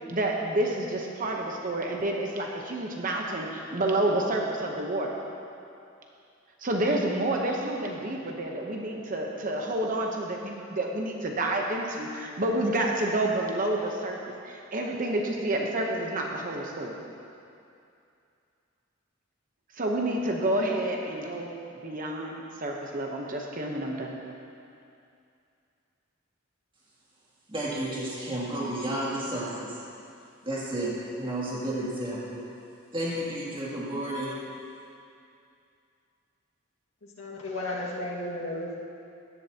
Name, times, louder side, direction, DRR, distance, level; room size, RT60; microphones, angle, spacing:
voice 1, 0.1-5.1 6.6-14.2 14.4-17.0 19.8-24.1, right 1 dB, 40° right, 0 dB, 0.9 m, -29 dB
voice 2, 27.5-29.7 30.4-32.4 32.9-34.3, right 1 dB, 25° right, -8 dB, 2.6 m, -32 dB
voice 3, 37.0-38.8, left 1 dB, 90° left, -4 dB, 1.9 m, -34 dB
16.5 x 11.0 x 2.9 m, 2.5 s
head